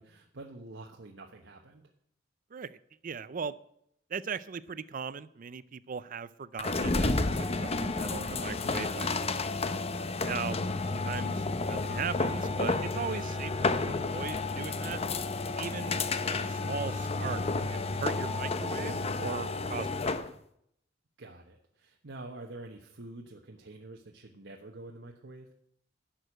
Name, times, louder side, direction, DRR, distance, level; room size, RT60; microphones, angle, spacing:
voice 1, 0.0-1.9 21.2-25.5, right 2 dB, 80° right, 1 dB, 1.1 m, -47 dB
voice 2, 3.0-3.6 4.1-9.2 10.2-10.6 10.9-15.0 15.6-16.0 16.3-17.4 17.7-20.3, right 6 dB, 50° right, 16 dB, 0.5 m, -38 dB
sound 1, 6.6-20.3, left 3 dB, 35° left, 0.7 m, -31 dB
11.5 x 6.4 x 8.8 m, 0.71 s
head